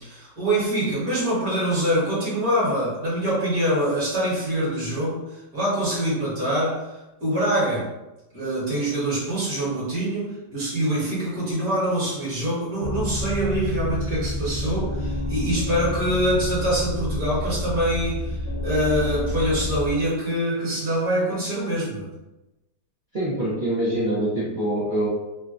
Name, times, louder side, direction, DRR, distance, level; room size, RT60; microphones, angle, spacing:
voice 1, 0.0-7.9 8.3-22.1, right 1 dB, 55° right, -8 dB, 1.8 m, -25 dB
sound 1, 12.8-19.9, left 1 dB, 85° left, 1.4 m, -29 dB
voice 2, 23.1-25.1, right 1 dB, 70° right, -10 dB, 0.4 m, -24 dB
3.7 x 2.2 x 2.4 m, 1.0 s
omnidirectional pair, 2.0 m